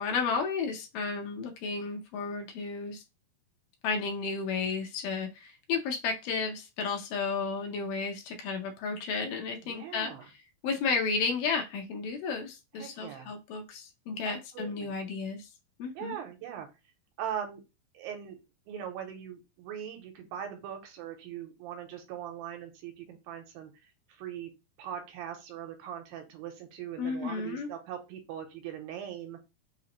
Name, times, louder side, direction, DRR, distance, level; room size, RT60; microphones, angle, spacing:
voice 1, 0.0-3.0 3.8-10.1 10.6-15.5 15.8-16.2 27.0-27.7, left 5 dB, 80° left, 3 dB, 2.1 m, -33 dB
voice 2, 9.6-10.3 12.8-13.3 14.2-14.9 15.9-16.7 17.2-17.6 17.9-18.4 18.7-23.7 24.1-24.5 24.8-29.4, right 9 dB, 80° right, 5 dB, 2.5 m, -40 dB
5.6 x 2.0 x 2.8 m, 0.26 s
omnidirectional pair, 4.2 m